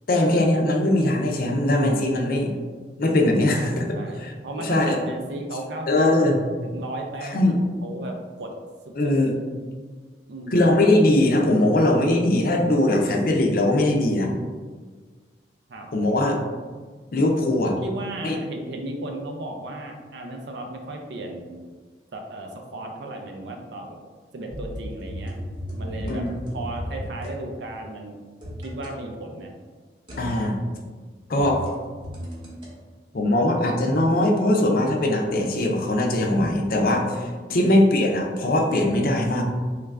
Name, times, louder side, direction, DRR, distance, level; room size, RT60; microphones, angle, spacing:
voice 1, 0.1-2.6 3.0-5.0 5.9-6.4 7.2-7.6 9.0-9.3 10.5-14.3 15.9-16.4 17.1-17.8 18.2-18.4 26.1-26.3 30.2-30.6 31.3-31.6 33.1-39.4, left 1 dB, 55° left, 1 dB, 0.5 m, -21 dB
voice 2, 3.5-6.1 6.6-7.6 7.8-8.5 8.9-9.2 10.3-10.6 15.7-15.9 17.8-21.6 22.1-24.0 24.3-25.4 25.8-26.3 26.5-28.2 28.6-29.5 37.5-37.8, right 2 dB, 75° right, 3 dB, 0.4 m, -35 dB
sound 1, 24.5-27.4 28.4-29.0 30.1-30.5 31.3-32.7 34.1-36.1 36.4-36.5, equal, 30° right, 0.8 m, -35 dB
3.2 x 2.4 x 3.3 m, 1.5 s
head